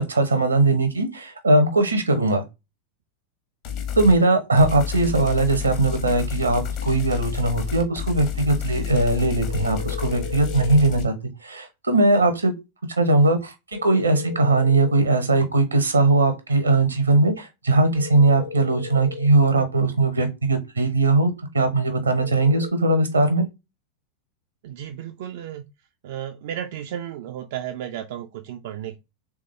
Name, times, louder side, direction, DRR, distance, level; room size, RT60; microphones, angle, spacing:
voice 1, 0.0-2.4 4.0-11.1 11.4-12.5 12.9-13.5 13.8-23.5, right 2 dB, 80° right, 0.9 m, -20 dB
sound 1, 3.6-4.2 4.6-11.0, left 8 dB, 45° left, 1.1 m, -30 dB
sound 2, 9.5-10.9 13.7-15.1 17.9-19.4 22.2-22.7, left 7 dB, 60° left, 0.4 m, -36 dB
voice 2, 24.6-25.7 26.0-29.0, right 10 dB, 55° right, 0.4 m, -33 dB
3.6 x 3.5 x 3.2 m
figure-of-eight pair, 90°, 0 cm